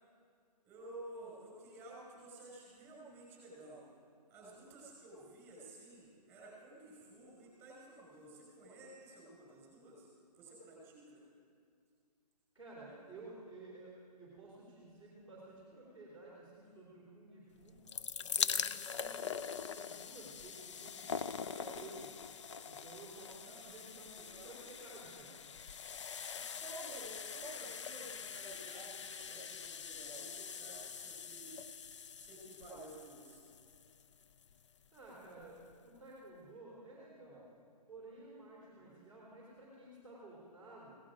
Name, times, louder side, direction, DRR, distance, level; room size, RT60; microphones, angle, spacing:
voice 1, 0.6-3.8 4.3-10.1 10.3-11.2 23.4-24.5 26.4-31.5 32.2-33.4 38.7-39.0, right 2 dB, 10° right, -4 dB, 5.4 m, -53 dB
voice 2, 12.5-17.8 18.2-22.1 22.6-25.3 34.9-37.5 37.9-40.9, right 2 dB, 5° left, -8 dB, 3.0 m, -54 dB
sound 1, 17.6-34.7 35.4-35.5 35.7-35.8, left 7 dB, 45° left, 0.4 m, -43 dB
17.0 x 15.0 x 5.0 m, 2.2 s
hypercardioid pair, 160°, 21 cm